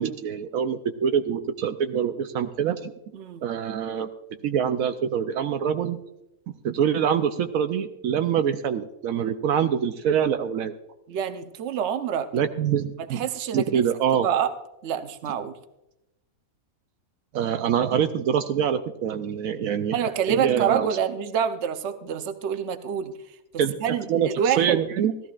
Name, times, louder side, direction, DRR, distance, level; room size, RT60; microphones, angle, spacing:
voice 1, 0.0-2.9 3.4-4.1 4.4-6.0 6.6-10.7 12.3-13.2 13.5-14.3 17.3-19.9 20.3-21.0 23.6-23.8 24.1-25.1, right 8 dB, 80° right, 8 dB, 1.0 m, -25 dB
voice 2, 3.1-3.5 11.1-12.3 13.1-13.8 14.2-14.5 14.8-15.6 19.9-23.1 23.8-24.8, right 8 dB, 60° right, 9 dB, 1.0 m, -27 dB
17.0 x 13.5 x 2.4 m, 0.90 s
omnidirectional pair, 1.5 m